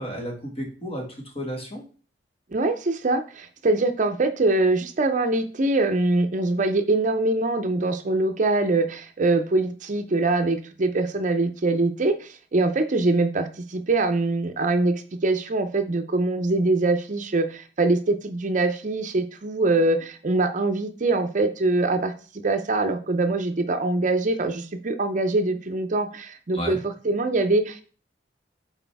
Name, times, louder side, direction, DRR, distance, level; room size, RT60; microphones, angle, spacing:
voice 1, 0.0-1.8 26.5-26.8, equal, 35° left, 0 dB, 2.0 m, -32 dB
voice 2, 2.5-22.1 22.4-26.8 27.0-27.8, right 2 dB, 45° right, 8 dB, 0.6 m, -23 dB
7.9 x 4.2 x 3.5 m, 0.39 s
head